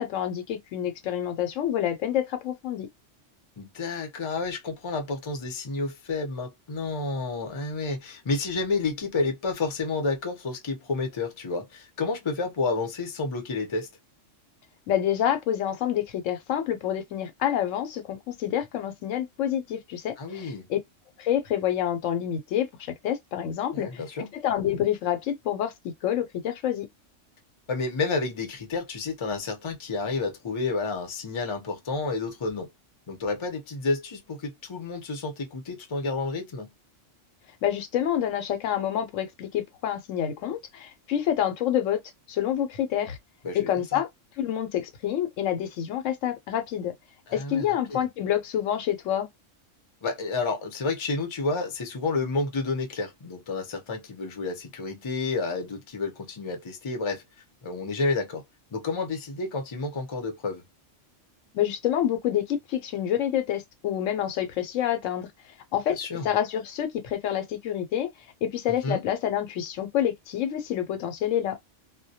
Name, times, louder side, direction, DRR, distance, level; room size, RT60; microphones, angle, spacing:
voice 1, 0.0-2.9 14.9-20.8 21.2-23.9 24.3-26.9 37.6-42.0 42.3-43.2 43.5-44.1 44.4-46.9 47.3-49.3 61.5-65.3 65.7-66.0 66.2-68.1 68.4-71.6, left 10 dB, 80° left, 1.0 m, -27 dB
voice 2, 3.6-13.9 20.2-20.7 23.7-24.3 27.7-32.7 33.1-36.7 43.4-44.0 47.3-48.1 50.0-57.2 57.6-58.4 58.7-60.6 65.9-66.3 68.7-69.0, left 3 dB, 30° left, 0.5 m, -30 dB
2.2 x 2.1 x 2.7 m
omnidirectional pair, 1.3 m